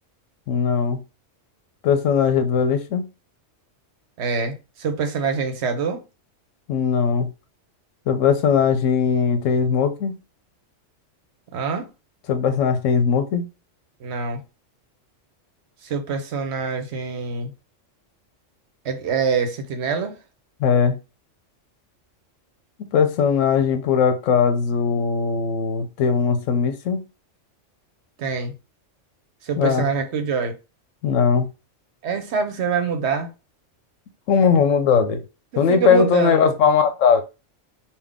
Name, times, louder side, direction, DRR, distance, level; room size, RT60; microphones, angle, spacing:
voice 1, 0.5-1.0 1.8-3.1 6.7-7.3 8.1-10.2 12.3-13.5 20.6-21.0 22.9-27.1 29.6-29.9 31.0-31.5 34.3-35.2 35.6-37.2, left 6 dB, 85° left, 1.0 m, -19 dB
voice 2, 4.2-6.0 11.5-11.9 14.0-14.4 15.8-17.5 18.8-20.2 28.2-28.5 29.4-30.5 32.0-33.3 35.5-36.5, right 5 dB, 65° right, 0.9 m, -25 dB
3.6 x 2.5 x 3.5 m
omnidirectional pair, 1.3 m